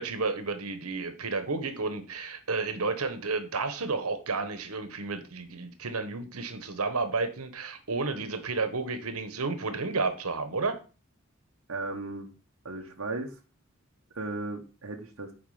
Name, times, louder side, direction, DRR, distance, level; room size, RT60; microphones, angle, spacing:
voice 1, 0.0-10.8, right 3 dB, 85° right, 9 dB, 1.2 m, -31 dB
voice 2, 11.7-12.3 12.6-13.4 14.1-15.3, right 2 dB, 70° right, 1 dB, 1.0 m, -36 dB
7.3 x 4.8 x 5.0 m, 0.35 s
head